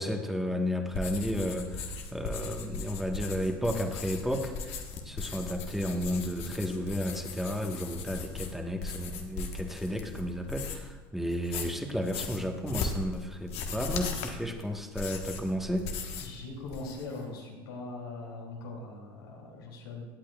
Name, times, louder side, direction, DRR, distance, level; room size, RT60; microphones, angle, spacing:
voice 1, 0.0-15.9, equal, ahead, 3 dB, 1.3 m, -33 dB
sound 1, 0.9-10.9 11.3-16.4 16.6-17.2, left 4 dB, 60° left, 1.3 m, -38 dB
voice 2, 16.2-20.1, left 3 dB, 80° left, -2 dB, 3.0 m, -41 dB
17.0 x 8.5 x 2.4 m, 1.3 s
hypercardioid pair, 80°, 12 cm